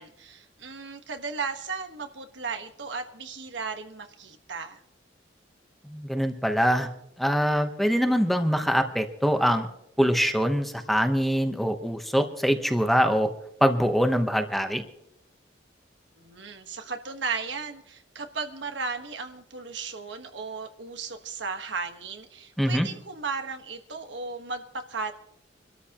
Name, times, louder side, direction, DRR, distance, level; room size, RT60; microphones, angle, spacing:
voice 1, 0.0-4.8 16.2-25.1, right 4 dB, 75° right, 6 dB, 1.3 m, -35 dB
voice 2, 5.8-6.9 7.2-9.7 10.0-13.3 13.6-14.8 22.6-22.9, equal, ahead, 6 dB, 0.9 m, -23 dB
26.0 x 13.0 x 2.9 m, 0.79 s
head